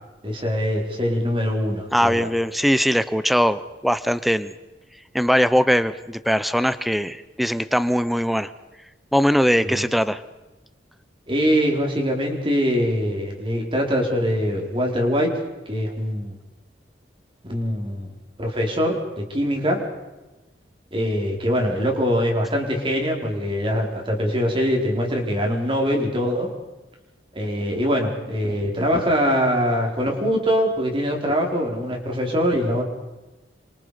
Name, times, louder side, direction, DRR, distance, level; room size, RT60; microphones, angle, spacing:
voice 1, 0.2-2.3 9.6-9.8 11.3-15.3 15.7-16.4 17.5-18.1 18.4-19.8 20.9-26.5 27.3-32.8, equal, 30° right, 1 dB, 4.8 m, -23 dB
voice 2, 1.9-4.5 5.1-8.5 9.1-10.2, equal, ahead, 14 dB, 0.8 m, -20 dB
28.0 x 26.0 x 5.2 m, 1.1 s
head